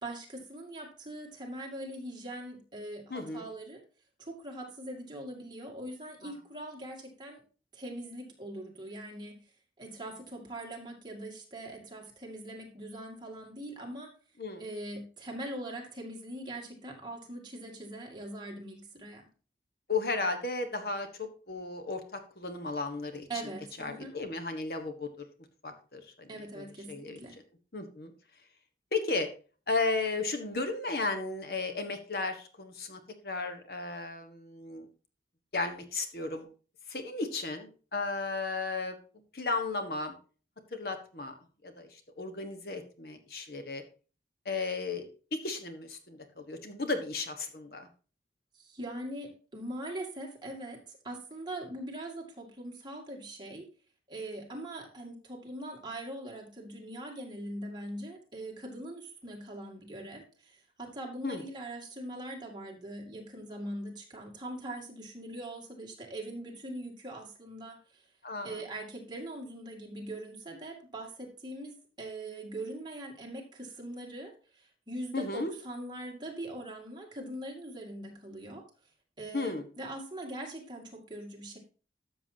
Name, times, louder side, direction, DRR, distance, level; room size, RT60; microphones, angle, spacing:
voice 1, 0.0-3.8 4.2-7.4 7.7-9.4 9.8-14.1 14.6-19.3 23.3-24.1 26.3-27.4 48.5-53.7 54.1-68.1 68.4-78.6 79.2-81.6, right 1 dB, 25° right, 0 dB, 2.2 m, -42 dB
voice 2, 3.1-3.5 6.2-6.3 14.4-14.6 19.9-23.3 23.8-25.2 25.6-26.3 26.5-27.2 27.7-28.1 28.9-29.3 29.7-34.8 35.5-36.5 36.9-39.0 39.3-40.1 40.7-41.3 41.6-43.8 44.4-47.9 61.2-61.4 68.2-68.6 75.1-75.5 79.3-79.6, left 3 dB, 60° left, 7 dB, 1.3 m, -34 dB
12.5 x 7.0 x 2.8 m, 0.36 s
head